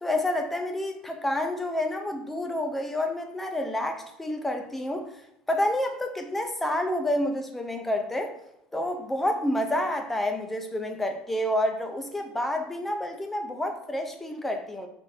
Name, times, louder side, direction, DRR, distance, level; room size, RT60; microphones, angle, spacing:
voice 1, 0.0-5.1 5.5-8.3 8.7-14.9, left 1 dB, 5° left, 4 dB, 0.4 m, -29 dB
4.6 x 2.6 x 4.4 m, 0.77 s
cardioid pair, 170°, 3 cm